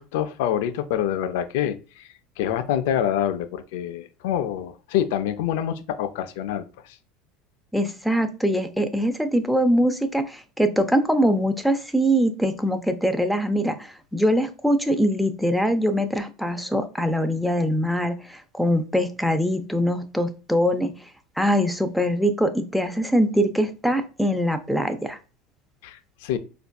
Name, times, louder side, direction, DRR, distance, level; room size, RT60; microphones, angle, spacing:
voice 1, 0.0-2.1 2.4-7.0 25.8-26.4, left 10 dB, 75° left, 10 dB, 0.4 m, -26 dB
voice 2, 7.7-20.9 21.4-25.2, equal, ahead, 8 dB, 0.5 m, -23 dB
4.2 x 2.5 x 2.3 m, 0.33 s
supercardioid pair, 100°, 0 cm